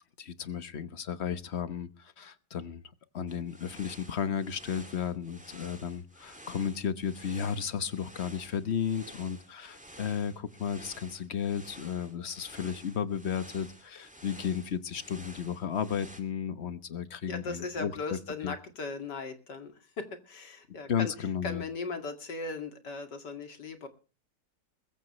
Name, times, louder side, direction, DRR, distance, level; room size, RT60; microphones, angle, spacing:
voice 1, 0.2-2.8 3.1-18.2 18.4-18.5 20.9-21.6, left 8 dB, 45° left, 1.2 m, -34 dB
sound 1, 3.3-16.2, equal, 5° right, 2.2 m, -51 dB
voice 2, 17.2-21.1 21.4-23.9, left 4 dB, 80° left, 2.9 m, -38 dB
21.5 x 14.5 x 3.1 m
omnidirectional pair, 1.8 m